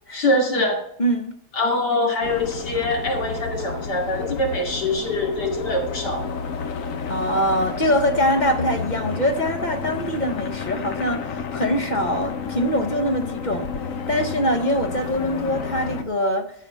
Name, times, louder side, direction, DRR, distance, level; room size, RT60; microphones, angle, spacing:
voice 1, 0.1-0.8 1.5-6.3, left 1 dB, 85° left, 2.9 m, -23 dB
voice 2, 1.0-1.4 7.1-13.7 14.1-16.5, equal, 40° left, 0.7 m, -23 dB
sound 1, 2.2-16.0, left 5 dB, 60° left, 1.3 m, -31 dB
14.5 x 4.8 x 6.1 m
omnidirectional pair, 1.8 m